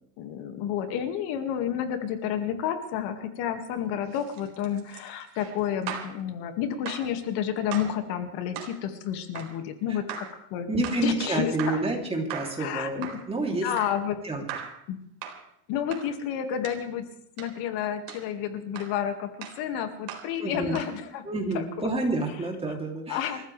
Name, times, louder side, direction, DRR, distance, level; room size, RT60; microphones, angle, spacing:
voice 1, 0.2-11.8 12.6-13.2 13.6-14.2 14.9-15.0 15.7-17.0 17.4-19.3 19.6-21.2 21.5-21.9 23.1-23.4, left 9 dB, 55° left, 6 dB, 2.2 m, -30 dB
sound 1, 4.0-6.2 6.8-7.1 7.7-8.0 8.5-8.8 9.3-9.6 10.1-10.4 10.8-11.1 11.6-11.9 12.3-12.6 13.0-13.3 13.8-14.0 14.5-14.8 15.2-15.4 15.9-16.1 16.6-16.8 17.4-17.6 18.1-18.3 18.7-19.0 19.4-19.6 20.1-20.3 20.7-21.0, right 9 dB, 60° right, 4.0 m, -39 dB
voice 2, 10.7-13.7 14.2-14.4 20.4-20.8 21.2-23.4, right 2 dB, 10° right, 1 dB, 3.1 m, -29 dB
28.5 x 14.5 x 3.4 m, 0.71 s
supercardioid pair, 145°, 47 cm